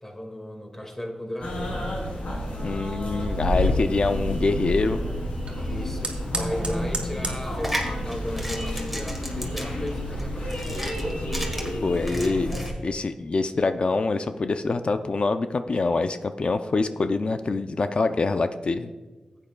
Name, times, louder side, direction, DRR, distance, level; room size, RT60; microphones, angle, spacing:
voice 1, 0.0-2.1 3.4-3.9 5.4-11.1, left 1 dB, 15° left, 2 dB, 1.9 m, -36 dB
sound 1, 1.4-12.7, left 1 dB, 80° left, 3.2 m, -29 dB
voice 2, 2.6-5.0 11.8-12.5 12.8-18.9, left 3 dB, 50° left, 9 dB, 0.4 m, -25 dB
Fire, 3.1-10.3, right 3 dB, 55° right, 2.0 m, -39 dB
sound 2, 7.4-12.7, equal, ahead, 1.8 m, -34 dB
15.0 x 8.6 x 2.3 m, 1.3 s
wide cardioid pair, 75°, 2 cm